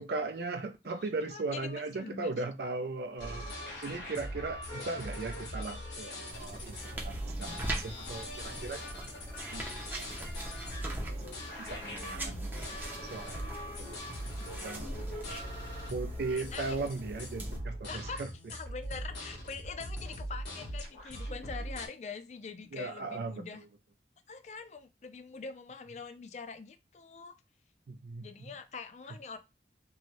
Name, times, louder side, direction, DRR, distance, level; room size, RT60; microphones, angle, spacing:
voice 1, 0.0-3.5 3.8-9.1 9.5-10.4 10.6-10.7 11.2-12.5 13.1-13.4 13.8-14.0 14.6-15.2 15.9-18.3 22.7-23.5 27.9-28.3, right 3 dB, 65° right, 8 dB, 0.4 m, -38 dB
voice 2, 0.9-2.3 6.9-7.8 11.8-12.5 14.2-14.5 15.2-15.4 16.3-16.8 17.9-18.2 18.5-23.6 24.3-27.4 28.2-29.4, left 5 dB, 40° left, 9 dB, 0.4 m, -45 dB
sound 1, 3.2-21.9, equal, 80° left, 1.3 m, -41 dB
sound 2, 6.3-17.6, right 1 dB, 10° right, 0.5 m, -42 dB
3.0 x 2.6 x 2.9 m, 0.25 s
head